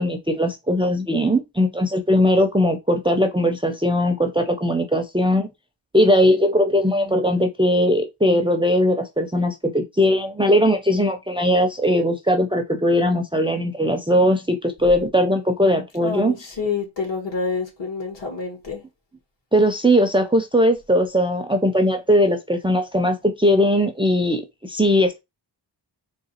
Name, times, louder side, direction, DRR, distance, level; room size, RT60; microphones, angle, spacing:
voice 1, 0.0-5.5 5.9-16.3 19.5-25.2, equal, 10° right, 0.4 m, -19 dB
voice 2, 16.0-18.8, left 4 dB, 70° left, 2.2 m, -27 dB
3.9 x 3.1 x 4.2 m
wide cardioid pair, 155°, 44 cm